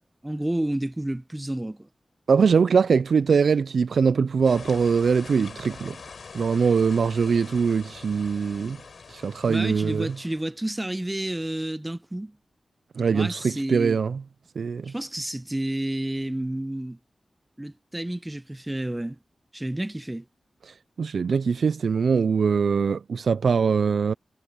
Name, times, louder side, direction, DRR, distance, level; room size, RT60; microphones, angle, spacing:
voice 1, 0.2-1.9 9.5-12.4 13.1-14.0 14.9-17.0 17.6-19.2 19.5-20.3, right 1 dB, 15° right, 0.7 m, -30 dB
voice 2, 2.3-6.0 6.3-8.8 9.1-10.1 13.0-14.2 14.6-14.9 20.7-24.1, right 5 dB, 85° right, 0.3 m, -22 dB
sound 1, 4.4-10.4, left 5 dB, 75° left, 7.8 m, -44 dB
wide cardioid pair, 95°, 0 cm